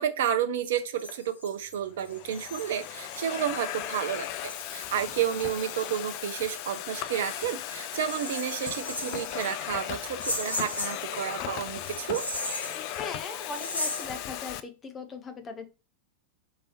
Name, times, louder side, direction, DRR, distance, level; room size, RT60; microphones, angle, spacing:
voice 1, 0.0-12.2, right 9 dB, 60° right, 0.4 m, -31 dB
Domestic sounds home sounds, 0.8-1.2 1.9-14.6, left 12 dB, 45° left, 0.3 m, -37 dB
sound 1, 0.9-6.0 6.5-6.6 7.0-9.6 10.2-11.4 11.8-14.2, left 1 dB, 80° left, 0.8 m, -37 dB
voice 2, 12.7-15.7, left 4 dB, 20° left, 0.7 m, -39 dB
4.6 x 2.9 x 2.9 m
figure-of-eight pair, 90°, 0 cm